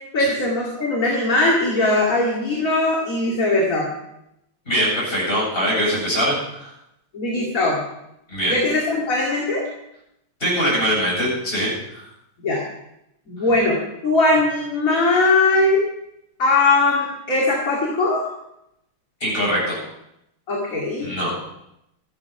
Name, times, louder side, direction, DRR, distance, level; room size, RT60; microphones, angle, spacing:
voice 1, 0.1-3.9 7.1-7.8 8.5-9.6 12.4-12.6 13.3-15.8 16.4-18.4 20.5-21.1, left 2 dB, 40° left, -3 dB, 2.7 m, -20 dB
voice 2, 4.7-6.7 8.3-8.5 10.4-11.7 19.2-19.8 21.0-21.3, equal, 25° left, -6 dB, 8.4 m, -22 dB
14.5 x 12.0 x 5.9 m, 0.82 s
omnidirectional pair, 2.3 m